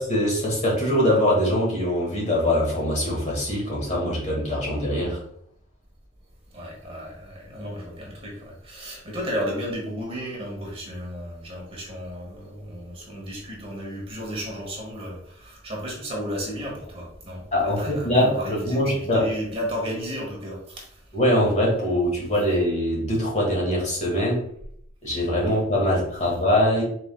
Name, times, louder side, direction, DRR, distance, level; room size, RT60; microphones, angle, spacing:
voice 1, 0.0-5.2 17.5-19.3 21.1-24.4 25.0-26.8, left 1 dB, 35° left, -3 dB, 1.8 m, -23 dB
voice 2, 6.5-20.9, equal, 30° right, -2 dB, 1.4 m, -33 dB
5.4 x 4.3 x 2.2 m, 0.68 s
head